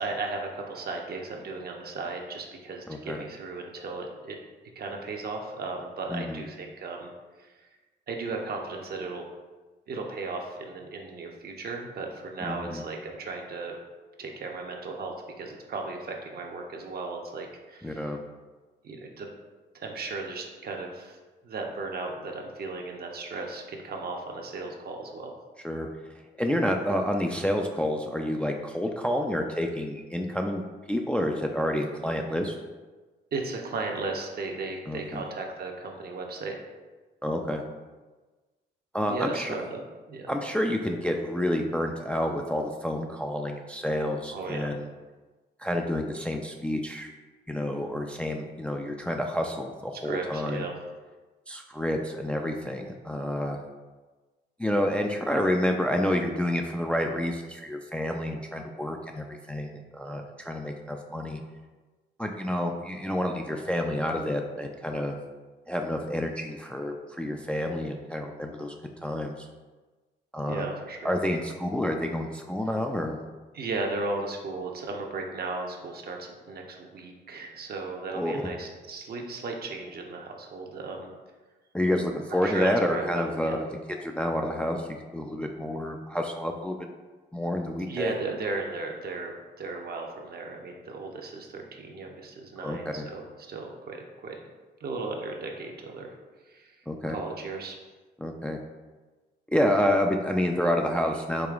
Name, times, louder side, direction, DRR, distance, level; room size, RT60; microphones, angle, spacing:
voice 1, 0.0-4.4 4.8-7.1 7.4-7.5 8.1-9.2 9.9-13.7 14.2-18.1 18.8-19.3 19.7-21.2 21.4-25.3 33.3-36.6 39.1-39.8 40.1-40.3 44.3-44.7 50.0-50.7 70.5-71.6 73.5-81.1 82.4-83.6 87.9-94.4 94.8-96.1 96.5-96.7 97.1-97.8, right 3 dB, 55° right, 1 dB, 0.7 m, -36 dB
voice 2, 2.9-3.2 6.1-6.4 12.5-12.8 17.8-18.2 25.6-25.9 26.4-30.6 30.9-32.6 34.9-35.2 37.2-37.6 38.9-39.5 40.3-44.9 45.6-47.1 47.5-50.6 51.5-53.6 54.6-61.4 62.2-65.2 65.7-68.7 69.0-69.5 70.3-70.7 71.0-73.2 78.1-78.4 81.7-83.7 84.0-84.9 85.1-86.8 87.3-88.1 92.6-93.1 96.9-97.2 98.2-98.6 99.5-101.5, left 1 dB, 5° left, 3 dB, 0.3 m, -29 dB
4.9 x 2.9 x 2.4 m, 1.3 s
cardioid pair, 70°, 19 cm